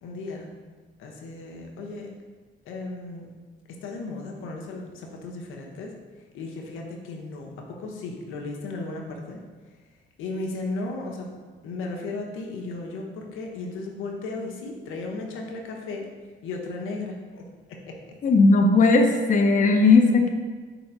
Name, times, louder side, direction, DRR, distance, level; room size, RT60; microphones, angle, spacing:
voice 1, 0.0-0.5 1.0-2.1 2.7-3.3 3.8-5.9 6.3-9.4 10.2-11.3 11.6-16.1 16.4-18.0, left 3 dB, 90° left, 0 dB, 1.0 m, -35 dB
voice 2, 18.2-20.3, left 3 dB, 40° left, 3 dB, 0.7 m, -17 dB
5.0 x 4.1 x 5.9 m, 1.4 s
cardioid pair, 90°, 20 cm